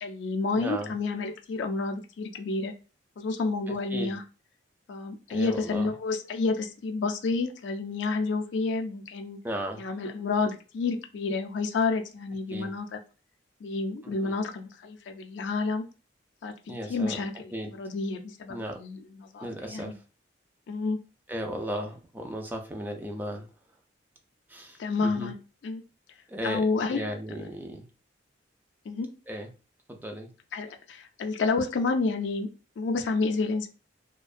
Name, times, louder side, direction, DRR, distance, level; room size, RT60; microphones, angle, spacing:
voice 1, 0.0-2.7 3.2-4.2 4.9-9.4 9.8-13.0 13.6-15.8 16.4-16.5 16.9-17.5 17.8-19.9 20.7-21.0 24.8-25.3 25.6-25.8 26.4-27.1 28.9-29.1 30.5-32.5 32.8-33.7, left 3 dB, 70° left, 5 dB, 0.4 m, -29 dB
voice 2, 0.5-0.9 3.7-4.2 5.3-5.9 9.4-9.8 12.5-12.7 14.0-14.3 16.7-17.2 17.5-17.7 18.5-18.8 19.4-20.0 21.3-23.5 24.5-25.3 26.3-27.9 29.3-29.5 29.9-30.3, equal, 10° right, 2 dB, 0.3 m, -36 dB
2.5 x 2.1 x 2.3 m, 0.34 s
head